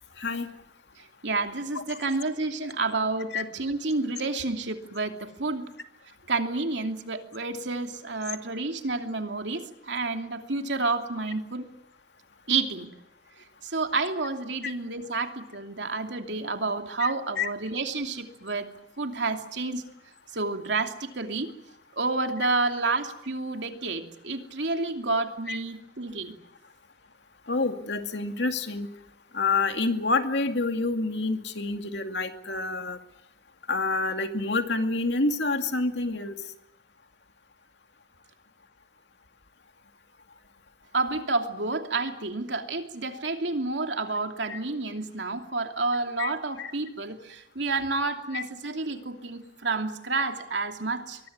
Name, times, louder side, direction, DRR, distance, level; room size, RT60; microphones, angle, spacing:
voice 1, 1.2-5.6 6.3-11.7 12.5-12.9 13.6-18.7 19.0-19.8 20.3-21.5 22.0-26.3 40.9-51.2, right 3 dB, 75° right, 5 dB, 2.8 m, -29 dB
voice 2, 17.0-17.5 25.5-25.6 27.5-28.9 29.3-33.0 33.7-36.3 44.5-44.6 46.2-46.3 46.6-46.7 48.3-48.4, left 3 dB, 70° left, 6 dB, 2.4 m, -28 dB
23.5 x 21.0 x 9.5 m, 0.81 s
head